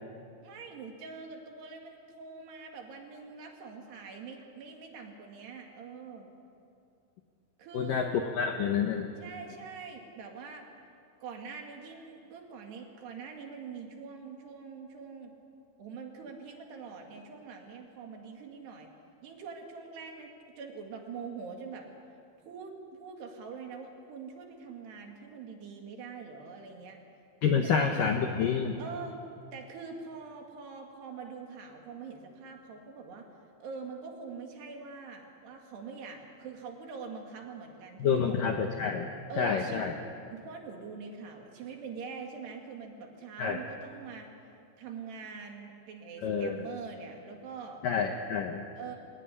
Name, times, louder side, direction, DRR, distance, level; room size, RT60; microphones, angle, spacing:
voice 1, 0.4-6.3 7.6-8.0 9.2-10.7 11.2-15.3 15.8-18.9 19.2-21.9 22.4-27.0 27.6-27.8 28.8-29.2 29.5-33.3 33.6-38.6 39.3-39.9 40.3-44.3 44.8-47.8 48.8-49.0, right 5 dB, 65° right, 2 dB, 4.1 m, -44 dB
voice 2, 7.7-9.1 27.4-28.8 38.0-39.9 43.4-43.6 46.2-46.6 47.8-48.6, left 6 dB, 75° left, 4 dB, 2.0 m, -28 dB
23.5 x 18.5 x 9.8 m, 2.5 s
omnidirectional pair, 5.4 m